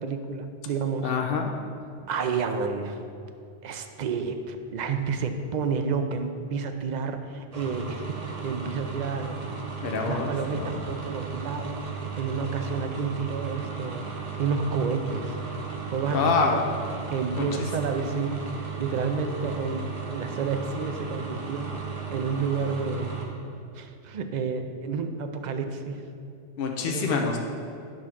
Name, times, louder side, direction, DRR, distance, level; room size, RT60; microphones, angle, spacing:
voice 1, 0.0-1.1 2.1-3.0 3.6-9.4 10.0-14.1 14.4-15.4 15.9-16.2 16.5-16.6 16.9-23.1 23.7-26.0 26.9-27.4, right 5 dB, 55° right, 6 dB, 0.5 m, -30 dB
voice 2, 1.0-1.6 9.8-10.3 10.6-10.7 16.1-16.6 17.4-17.5 26.6-27.4, left 5 dB, 60° left, 2 dB, 0.7 m, -26 dB
sound 1, 7.5-23.3, right 6 dB, 35° right, 0.9 m, -35 dB
8.8 x 3.7 x 5.8 m, 2.6 s
omnidirectional pair, 1.2 m